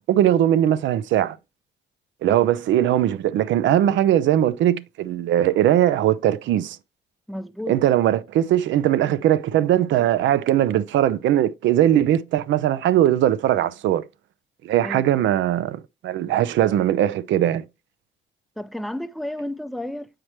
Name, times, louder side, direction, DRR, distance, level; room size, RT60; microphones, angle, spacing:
voice 1, 0.1-1.4 2.2-6.8 7.7-14.0 14.6-17.6, right 12 dB, 75° right, 0.6 m, -20 dB
voice 2, 7.3-7.7 14.8-15.1 18.6-20.1, left 1 dB, ahead, 0.4 m, -32 dB
7.4 x 4.8 x 3.0 m
cardioid pair, 85°, 20 cm